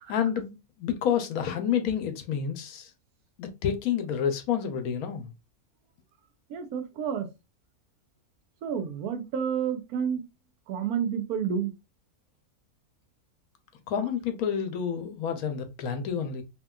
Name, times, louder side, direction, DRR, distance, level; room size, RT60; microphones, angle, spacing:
voice 1, 0.1-2.9 3.4-5.3 13.9-16.4, left 8 dB, 75° left, 1.1 m, -29 dB
voice 2, 6.5-7.3 8.6-10.2 10.7-11.7, right 7 dB, 85° right, 1.1 m, -30 dB
2.9 x 2.8 x 2.2 m
omnidirectional pair, 1.6 m